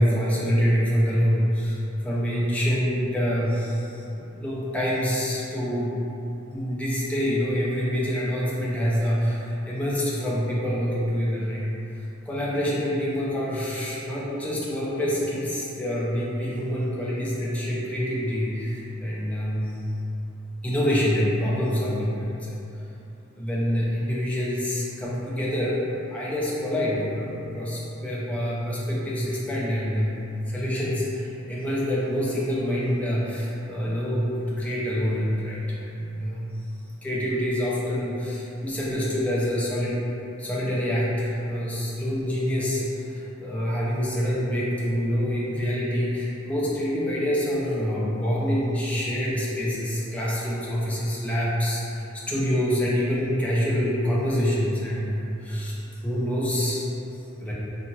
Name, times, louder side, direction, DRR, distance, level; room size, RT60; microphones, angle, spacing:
voice 1, 0.0-3.9 4.2-5.9 6.5-11.6 12.3-19.7 20.6-22.5 23.3-25.8 26.1-30.1 30.5-35.6 35.9-36.5 37.0-40.0 40.4-42.8 43.1-55.8 56.0-56.8 57.4-57.5, equal, 5° left, -7 dB, 0.4 m, -26 dB
2.8 x 2.3 x 2.6 m, 2.9 s
head